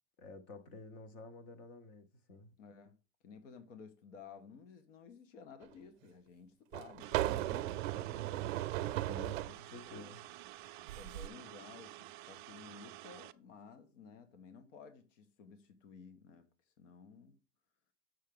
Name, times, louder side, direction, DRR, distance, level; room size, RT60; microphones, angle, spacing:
voice 1, 0.2-2.5 9.1-10.2, left 3 dB, 20° left, 0.4 m, -51 dB
voice 2, 2.6-2.9 3.2-9.1 9.9-10.2 10.9-16.5 16.8-17.4, left 5 dB, 75° left, 1.4 m, -55 dB
sound 1, 5.6-5.7 6.7-9.6 10.8-11.3, right 15 dB, 90° right, 0.6 m, -36 dB
sound 2, 7.0-13.3, right 16 dB, 40° right, 0.4 m, -51 dB
7.4 x 6.5 x 3.6 m
supercardioid pair, 175°, 38 cm